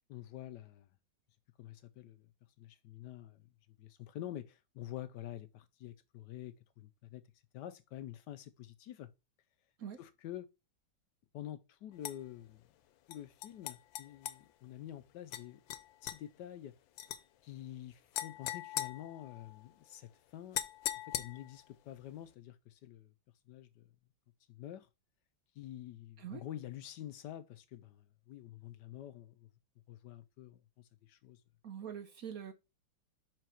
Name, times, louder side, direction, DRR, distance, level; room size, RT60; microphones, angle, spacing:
voice 1, 0.1-0.9 1.6-2.3 2.6-3.4 3.8-7.2 7.5-9.1 10.0-10.5 11.3-12.6 13.1-15.6 16.0-16.8 17.4-20.6 21.0-23.1 23.5-23.9 24.5-24.9 25.5-29.5 29.9-31.4, left 12 dB, 70° left, 1.1 m, -48 dB
sound 1, 12.0-12.2 13.1-14.4 15.3-15.4 15.7-16.2 17.0-17.2 18.1-19.6 20.5-21.6, left 12 dB, 90° left, 1.4 m, -40 dB
voice 2, 31.6-32.5, right 8 dB, 60° right, 1.1 m, -44 dB
5.7 x 4.7 x 4.3 m
omnidirectional pair, 2.1 m